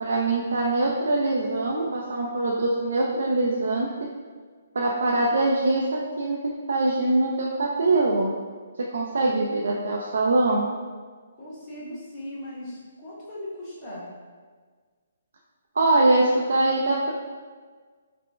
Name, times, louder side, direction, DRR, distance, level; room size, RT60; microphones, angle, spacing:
voice 1, 0.0-3.9 4.8-6.4 6.7-8.3 8.9-10.7 15.8-17.1, right 2 dB, 75° right, -2 dB, 0.3 m, -23 dB
voice 2, 9.2-9.6 11.3-14.1, left 1 dB, 30° left, -9 dB, 1.0 m, -38 dB
3.7 x 2.2 x 2.2 m, 1.6 s
hypercardioid pair, 145°, 0 cm